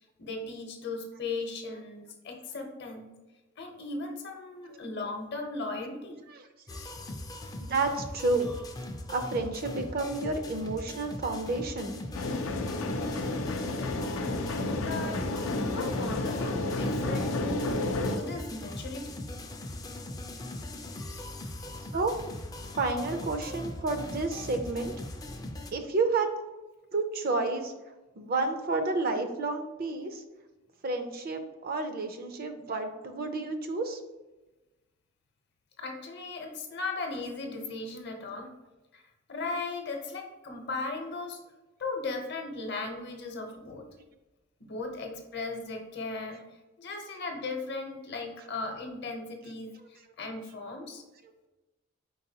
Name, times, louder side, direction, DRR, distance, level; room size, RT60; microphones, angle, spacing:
voice 1, 0.2-3.1 3.6-6.2 14.8-15.2 15.5-19.2 35.8-38.5 38.9-39.0 39.3-41.4 41.8-43.9 44.6-46.4 46.8-51.0, left 3 dB, 55° left, 3 dB, 0.8 m, -37 dB
sound 1, 6.7-25.7, left 1 dB, 20° left, 0.4 m, -40 dB
voice 2, 7.6-8.5 9.1-12.0 21.9-22.1 22.8-24.9 25.7-26.3 26.9-27.7 28.2-30.2 30.8-34.0, right 3 dB, 50° right, 6 dB, 0.5 m, -30 dB
sound 2, 12.1-18.2, left 2 dB, 80° left, 0.5 m, -31 dB
4.5 x 4.0 x 2.8 m, 1.1 s
head